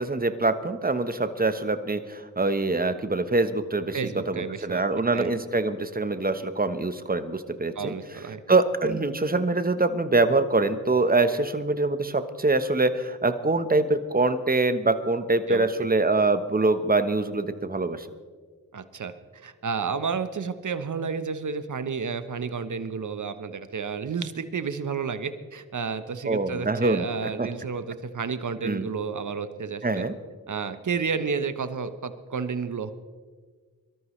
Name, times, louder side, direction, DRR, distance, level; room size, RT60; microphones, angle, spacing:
voice 1, 0.0-4.0 4.3-7.9 8.5-18.1 26.3-27.5 28.6-28.9 29.8-30.1, right 3 dB, 25° right, 10 dB, 1.1 m, -24 dB
voice 2, 3.9-5.3 7.7-8.4 15.5-15.7 18.7-30.0 30.5-32.9, right 5 dB, 55° right, 10 dB, 1.1 m, -31 dB
23.0 x 13.5 x 3.3 m, 1.5 s
cardioid pair, 50°, 37 cm